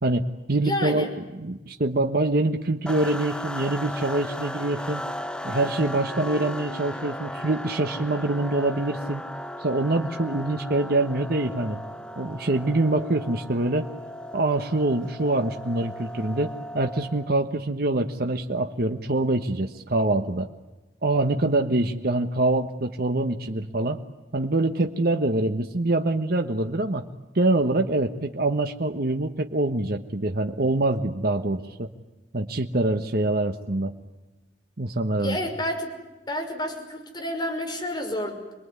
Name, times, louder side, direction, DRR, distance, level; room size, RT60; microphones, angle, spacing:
voice 1, 0.0-1.0 1.3-5.0 5.4-9.2 9.6-11.8 12.2-13.9 14.3-20.5 21.0-24.0 24.3-27.0 27.3-31.9 32.3-33.9 34.8-35.4, right 2 dB, 60° right, 5 dB, 1.3 m, -25 dB
voice 2, 0.6-1.1 35.2-35.9 36.3-38.6, left 1 dB, 25° left, 3 dB, 5.6 m, -30 dB
sound 1, 2.9-17.4, left 1 dB, 5° left, 1.0 m, -36 dB
27.0 x 22.0 x 9.7 m, 1.1 s
head